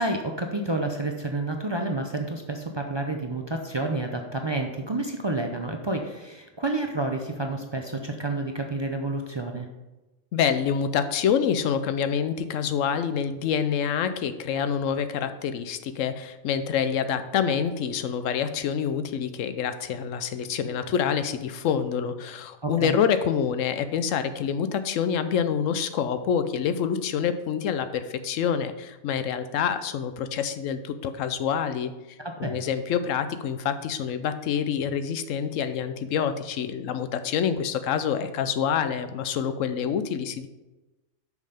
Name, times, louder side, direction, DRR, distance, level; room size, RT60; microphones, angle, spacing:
voice 1, 0.0-9.7 22.6-23.0 32.2-32.6, right 2 dB, 40° right, 3 dB, 0.4 m, -29 dB
voice 2, 10.3-31.9 32.4-40.5, left 7 dB, 80° left, 11 dB, 1.0 m, -27 dB
6.2 x 5.6 x 5.1 m, 1.1 s
omnidirectional pair, 1.3 m